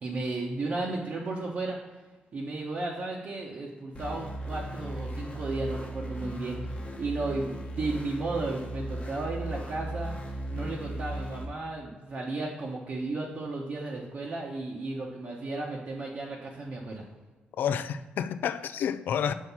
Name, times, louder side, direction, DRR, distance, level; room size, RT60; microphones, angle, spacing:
voice 1, 0.0-1.8 2.3-10.2 10.5-17.0, right 2 dB, 45° right, 0.9 m, -34 dB
sound 1, 3.9-11.5, right 1 dB, 35° left, 1.0 m, -37 dB
voice 2, 17.5-19.3, left 8 dB, 70° left, 0.4 m, -29 dB
5.5 x 4.5 x 5.9 m
wide cardioid pair, 145°, 3 cm